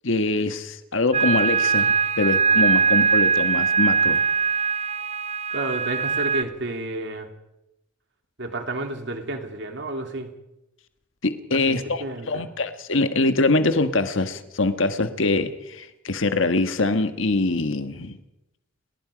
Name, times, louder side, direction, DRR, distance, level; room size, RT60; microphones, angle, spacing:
voice 1, 0.0-4.2 11.2-18.2, left 2 dB, 65° left, 9 dB, 1.5 m, -24 dB
sound 1, 1.1-6.4, right 5 dB, 30° right, 0.7 m, -21 dB
voice 2, 5.5-7.3 8.4-10.3 11.5-12.5, right 2 dB, 60° right, 4 dB, 3.0 m, -31 dB
29.0 x 19.5 x 5.2 m, 0.92 s
head